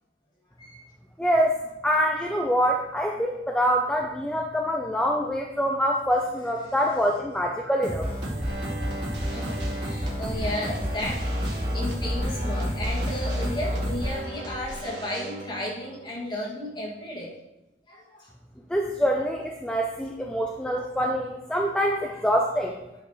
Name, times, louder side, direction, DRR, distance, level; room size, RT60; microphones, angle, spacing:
voice 1, 1.2-1.5 1.8-8.1 18.7-22.7, equal, 5° left, 0 dB, 0.5 m, -25 dB
sound 1, 7.8-14.2, equal, 40° right, 3.2 m, -29 dB
sound 2, 8.2-17.4, right 1 dB, 75° right, 1.7 m, -39 dB
voice 2, 9.3-11.2 11.5-17.3 17.9-18.3 20.7-20.9, left 1 dB, 25° left, -4 dB, 2.1 m, -34 dB
11.0 x 6.4 x 3.1 m, 0.95 s
head